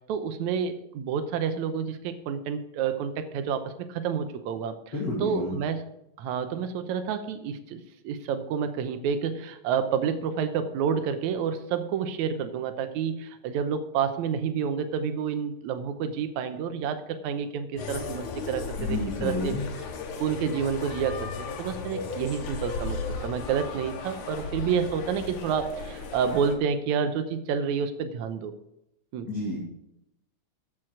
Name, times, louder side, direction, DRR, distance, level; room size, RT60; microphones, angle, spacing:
voice 1, 0.1-4.8 5.2-5.8 6.2-19.5 20.2-23.0 23.2-28.5 29.1-29.3, right 7 dB, 75° right, 9 dB, 2.2 m, -29 dB
voice 2, 4.9-5.6 18.8-19.6 29.3-29.6, left 2 dB, 35° left, -5 dB, 3.0 m, -30 dB
sound 1, 17.8-26.6, left 4 dB, 75° left, 2.7 m, -35 dB
14.0 x 6.2 x 4.8 m, 0.84 s
omnidirectional pair, 3.5 m